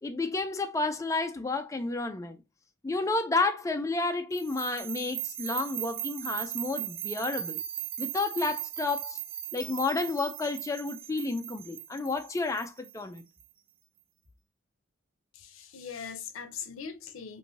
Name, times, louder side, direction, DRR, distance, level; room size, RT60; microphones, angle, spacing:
voice 1, 0.0-2.4 2.8-7.6 8.0-9.2 9.5-13.2, left 3 dB, 15° left, 0.3 m, -31 dB
sound 1, 4.3-13.4, right 12 dB, 80° right, 0.5 m, -38 dB
voice 2, 15.3-17.4, left 6 dB, 90° left, 0.5 m, -41 dB
3.1 x 2.5 x 2.6 m
head